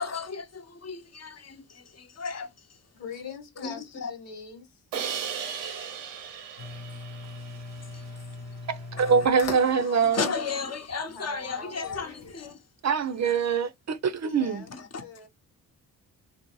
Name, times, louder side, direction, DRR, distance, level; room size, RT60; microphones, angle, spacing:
voice 1, 0.0-2.5 3.6-4.1 7.9-8.0 9.0-9.1 9.4-12.6 14.7-15.0, left 5 dB, 35° left, 0.9 m, -34 dB
voice 2, 2.9-4.8 11.0-12.3 14.4-14.7 14.9-15.3, left 6 dB, 75° left, 1.2 m, -43 dB
Crash cymbal, 4.9-8.0, right 7 dB, 90° right, 0.7 m, -36 dB
sound 1, 6.6-12.5, left 3 dB, 90° left, 0.8 m, -42 dB
voice 3, 8.7-10.3 12.8-14.6, right 6 dB, 40° right, 0.5 m, -24 dB
2.6 x 2.0 x 2.9 m
supercardioid pair, 45°, 42 cm